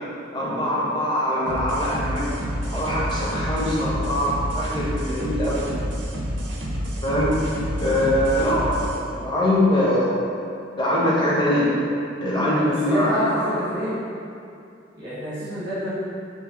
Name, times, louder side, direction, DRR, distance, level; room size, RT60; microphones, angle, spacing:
voice 1, 0.3-2.2 2.7-5.6 7.0-7.3 7.8-10.2 10.8-11.7 12.2-13.5, left 1 dB, 25° left, -8 dB, 1.0 m, -22 dB
sound 1, 1.5-9.0, equal, 75° right, 0.7 m, -29 dB
voice 2, 12.5-14.0 14.9-15.9, equal, 50° right, -11 dB, 1.1 m, -28 dB
4.4 x 3.1 x 3.6 m, 2.5 s
head